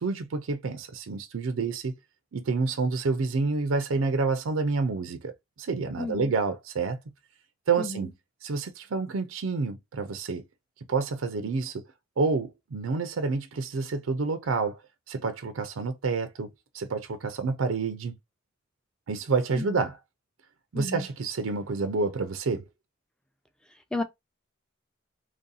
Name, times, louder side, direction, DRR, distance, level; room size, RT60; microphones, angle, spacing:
voice 1, 0.0-1.9 2.3-5.3 5.6-7.0 7.7-8.1 8.4-10.4 10.9-11.8 12.2-14.8 15.1-16.5 16.7-18.2 19.1-20.0 20.7-22.6, right 4 dB, 90° right, 0.5 m, -28 dB
voice 2, 6.0-6.3 7.8-8.1 19.6-19.8 20.7-21.1 23.9-24.0, left 3 dB, 5° left, 0.5 m, -33 dB
3.0 x 2.7 x 3.9 m
head